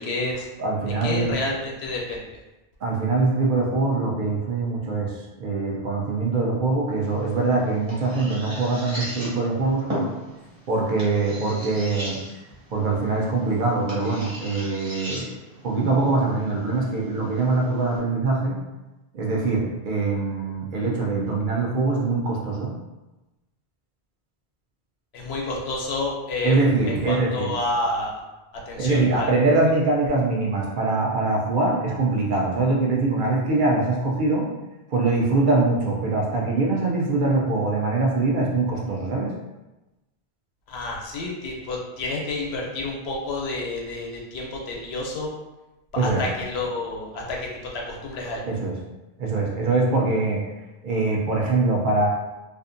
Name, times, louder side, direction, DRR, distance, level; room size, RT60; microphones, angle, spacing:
voice 1, 0.0-0.5 1.0-2.3 25.1-26.6 26.9-28.2 28.7-29.3 40.7-45.3 45.9-47.5 47.9-48.4, left 2 dB, 85° left, -2 dB, 0.9 m, -29 dB
voice 2, 0.6-1.3 2.8-10.1 10.7-12.2 12.7-15.3 15.6-18.6 19.1-22.7 26.4-27.5 28.8-34.5 34.9-39.3 46.0-46.2 48.4-48.8 49.2-50.4 50.8-52.1, right 3 dB, 60° right, -2 dB, 0.6 m, -23 dB
sound 1, 7.0-18.0, right 1 dB, 35° right, 1.2 m, -37 dB
2.5 x 2.4 x 2.5 m, 1.0 s
omnidirectional pair, 1.0 m